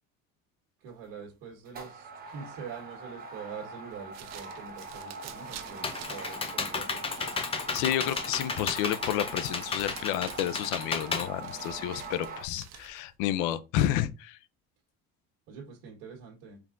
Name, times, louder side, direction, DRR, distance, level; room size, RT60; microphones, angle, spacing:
voice 1, 0.8-7.3 15.5-16.6, right 6 dB, 75° right, 1.4 m, -45 dB
sound 1, 0.9-1.2 1.6-12.4, right 3 dB, 25° right, 1.0 m, -43 dB
sound 2, 3.9-13.1, right 10 dB, 55° right, 0.7 m, -50 dB
Computer keyboard, 5.3-12.2, left 4 dB, 15° left, 0.5 m, -34 dB
voice 2, 7.5-14.4, left 12 dB, 75° left, 0.5 m, -30 dB
4.7 x 3.4 x 2.5 m
cardioid pair, 140°, 33 cm